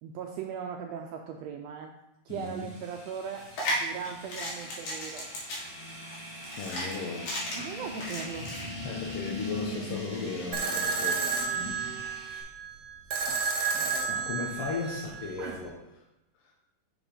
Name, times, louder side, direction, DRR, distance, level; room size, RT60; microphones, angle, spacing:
voice 1, 0.0-1.9 2.2-5.4 7.5-8.5 12.0-12.2 13.3-13.4 13.8-14.6 15.4-15.6, right 7 dB, 85° right, 3 dB, 1.5 m, -39 dB
voice 2, 2.3-2.7 6.6-7.4 8.8-11.2 14.1-15.7 16.4-16.5, left 4 dB, 70° left, -1 dB, 1.5 m, -36 dB
sound 1, 2.3-12.4, left 2 dB, 25° left, 0.5 m, -41 dB
sound 2, 3.4-8.6, equal, 90° left, 3.5 m, -35 dB
sound 3, 10.5-15.5, right 5 dB, 60° right, 1.8 m, -31 dB
6.2 x 5.0 x 5.0 m, 0.91 s
omnidirectional pair, 3.5 m